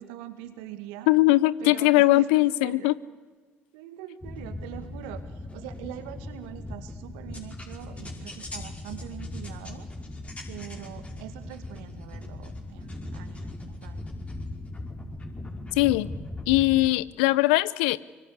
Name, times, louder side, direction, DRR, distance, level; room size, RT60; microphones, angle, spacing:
voice 1, 0.0-1.1 1.6-2.9 3.7-9.9 10.5-14.0, right 12 dB, 75° right, 10 dB, 2.2 m, -43 dB
voice 2, 1.1-2.9 15.8-16.1 16.5-18.0, left 18 dB, 75° left, 20 dB, 0.7 m, -20 dB
sound 1, 4.2-16.9, left 2 dB, 20° left, 5.2 m, -39 dB
24.5 x 24.0 x 8.2 m, 1.4 s
hypercardioid pair, 50°, 6 cm